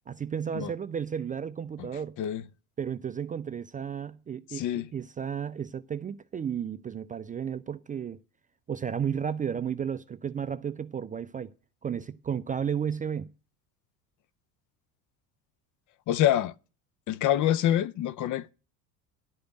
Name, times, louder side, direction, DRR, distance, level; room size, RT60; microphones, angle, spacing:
voice 1, 0.1-2.2 2.8-8.2 8.7-11.5 11.8-13.3, right 8 dB, 20° right, 0.4 m, -33 dB
voice 2, 4.5-4.9 16.1-16.5 17.1-18.5, left 12 dB, 40° left, 0.7 m, -26 dB
11.5 x 5.1 x 7.9 m
hypercardioid pair, 70°, 47 cm